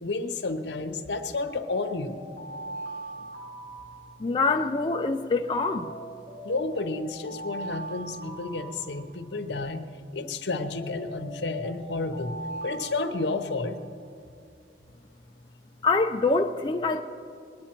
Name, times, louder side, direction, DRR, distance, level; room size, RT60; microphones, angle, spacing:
voice 1, 0.0-2.2 6.4-9.9 10.1-12.4 12.6-13.8, left 3 dB, 75° left, 8 dB, 0.8 m, -31 dB
sound 1, 1.5-4.7 5.8-9.5 10.7-13.9, right 2 dB, 85° right, 2.1 m, -41 dB
voice 2, 4.2-5.9 15.8-17.0, left 3 dB, 25° left, 4 dB, 0.4 m, -25 dB
21.0 x 9.7 x 4.4 m, 2.4 s
head